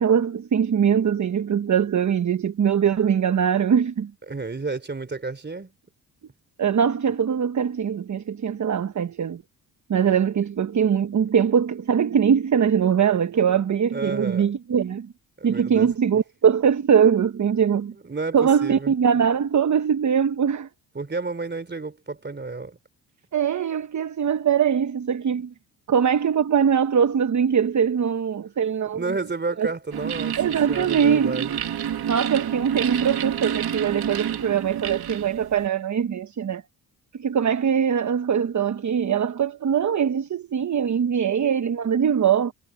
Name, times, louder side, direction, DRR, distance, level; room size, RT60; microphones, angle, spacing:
voice 1, 0.0-4.1 6.6-9.4 9.9-15.1 15.4-17.9 18.3-20.7 23.3-25.5 25.9-29.0 29.6-29.7 30.4-31.5 32.1-36.6 37.1-42.5, right 7 dB, 45° right, 1.1 m, -22 dB
voice 2, 4.3-5.7 13.9-14.5 15.4-16.2 17.9-19.2 20.9-22.8 28.9-30.4 30.7-31.6, right 3 dB, 25° right, 3.4 m, -31 dB
sound 1, 29.9-35.7, right 9 dB, 70° right, 2.2 m, -29 dB
cardioid pair, 65°, 39 cm